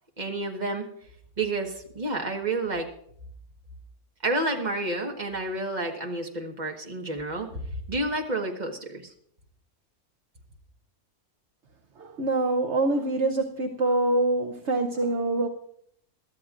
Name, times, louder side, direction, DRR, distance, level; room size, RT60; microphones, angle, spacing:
voice 1, 0.2-0.9 1.4-2.9 4.2-7.6 7.9-9.1, right 2 dB, 30° right, 2 dB, 1.5 m, -30 dB
voice 2, 12.0-15.5, right 2 dB, 55° right, 4 dB, 1.0 m, -25 dB
22.0 x 13.0 x 2.5 m, 0.67 s
omnidirectional pair, 1.6 m